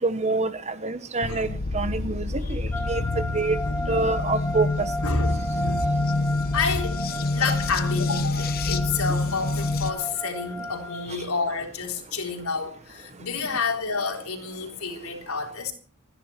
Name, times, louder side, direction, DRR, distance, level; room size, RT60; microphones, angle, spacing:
voice 1, 0.0-2.6 2.9-3.6 3.9-4.9, right 3 dB, 30° right, 1.0 m, -26 dB
sound 1, 1.2-9.9, left 2 dB, 45° left, 1.0 m, -27 dB
voice 2, 2.4-3.0 3.7-4.2 5.0-6.0 6.5-7.0 7.3-15.7, left 4 dB, 75° left, 3.8 m, -29 dB
sound 2, 2.7-11.1, equal, 10° left, 0.9 m, -35 dB
26.0 x 10.5 x 4.4 m
head